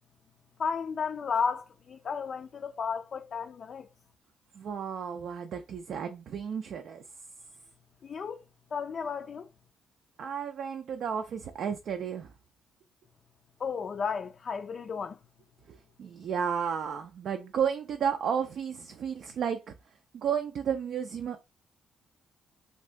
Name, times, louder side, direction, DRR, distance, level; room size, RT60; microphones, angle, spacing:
voice 1, 0.6-3.9 8.0-8.4 8.7-9.5 13.6-15.2, left 6 dB, 50° left, 0.3 m, -33 dB
voice 2, 4.5-7.0 10.2-12.3 15.7-19.7 20.1-21.4, right 7 dB, 65° right, 0.4 m, -32 dB
2.7 x 2.6 x 3.3 m
cardioid pair, 90°, 0 cm